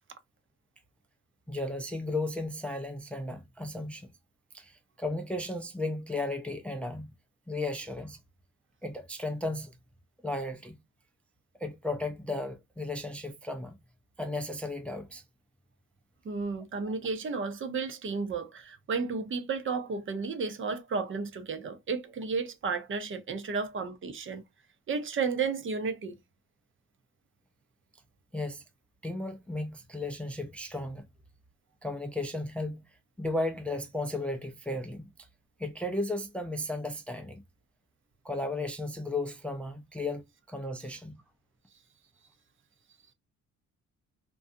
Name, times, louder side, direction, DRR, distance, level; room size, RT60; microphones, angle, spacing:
voice 1, 1.5-4.1 4.5-7.1 7.5-8.2 8.8-9.7 10.2-10.8 11.6-13.7 14.2-15.2 28.3-28.6 29.0-31.0 31.8-32.9 33.2-35.1 35.6-37.4 38.2-41.2, left 2 dB, 5° left, 0.4 m, -35 dB
voice 2, 16.2-24.4 24.9-26.1, right 4 dB, 45° right, 0.6 m, -33 dB
2.5 x 2.3 x 2.5 m
cardioid pair, 90°, 30 cm